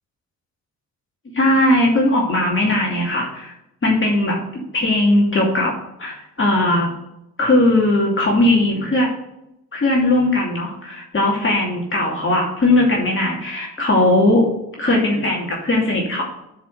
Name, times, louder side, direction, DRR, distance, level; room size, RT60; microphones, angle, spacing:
voice 1, 1.3-3.5 3.8-5.7 6.0-6.9 7.4-9.1 9.7-14.4 14.8-16.2, left 1 dB, 35° left, -3 dB, 2.5 m, -18 dB
6.5 x 5.2 x 6.4 m, 0.84 s
supercardioid pair, 60°, 34 cm